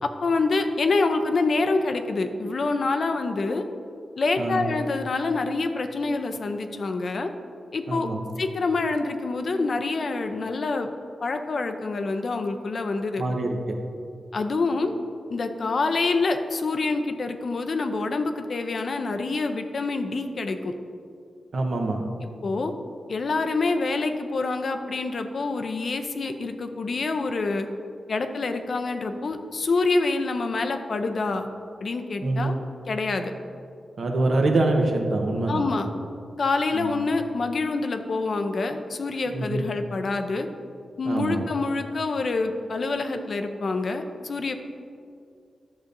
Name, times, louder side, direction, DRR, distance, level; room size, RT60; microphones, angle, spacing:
voice 1, 0.0-3.6 4.2-7.3 7.7-8.1 8.4-10.9 11.2-13.2 14.3-14.9 15.3-20.7 22.4-22.7 23.1-27.7 28.1-31.5 31.8-32.5 32.9-33.3 35.5-35.9 36.4-40.5 41.0-44.6, left 3 dB, 55° left, 6 dB, 0.5 m, -26 dB
voice 2, 7.9-8.2 13.2-13.7 21.5-22.0 32.2-32.6 34.0-35.6 36.7-36.9 39.3-39.6 41.0-41.4, right 2 dB, 65° right, 2 dB, 0.9 m, -25 dB
11.0 x 6.7 x 2.6 m, 2.4 s
wide cardioid pair, 95°, 0 cm